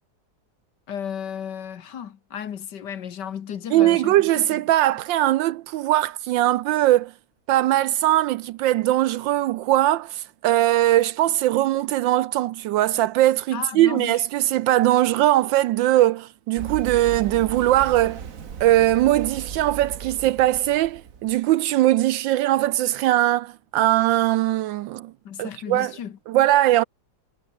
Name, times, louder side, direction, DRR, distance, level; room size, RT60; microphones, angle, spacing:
voice 1, 0.9-4.5 13.5-14.2 25.3-26.2, left 8 dB, 60° left, 1.8 m, -34 dB
voice 2, 3.7-7.1 7.5-18.2 18.6-25.1 25.4-25.9 26.3-26.8, right 14 dB, 75° right, 1.2 m, -20 dB
Run, 16.6-21.4, right 7 dB, 45° right, 1.6 m, -36 dB
omnidirectional pair, 2.3 m